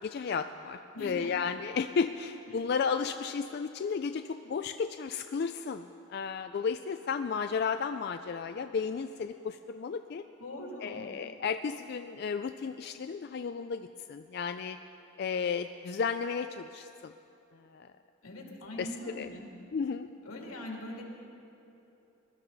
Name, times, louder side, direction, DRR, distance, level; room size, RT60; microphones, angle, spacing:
voice 1, 0.0-10.2 10.8-14.8 15.2-17.1 17.6-17.9 18.8-18.9 19.1-19.3 19.7-20.1, left 5 dB, 50° left, 8 dB, 0.3 m, -33 dB
voice 2, 0.9-1.4 2.5-2.6 10.4-11.1 18.2-19.5 20.2-21.1, left 1 dB, 90° left, -1 dB, 2.7 m, -42 dB
21.5 x 13.0 x 4.0 m, 2.9 s
head